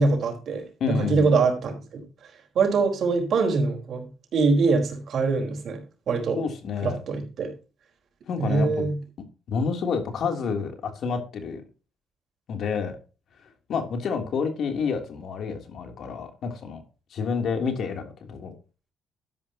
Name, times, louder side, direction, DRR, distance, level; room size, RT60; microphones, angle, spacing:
voice 1, 0.0-2.0 2.5-6.4 6.8-7.5 8.4-9.0, right 4 dB, 65° right, 4.3 m, -24 dB
voice 2, 0.8-1.4 6.3-7.0 8.3-8.9 9.5-11.6 12.5-13.0 13.4-16.8 17.1-18.5, left 5 dB, 65° left, 3.1 m, -29 dB
12.5 x 11.0 x 2.9 m
cardioid pair, 90°, 0 cm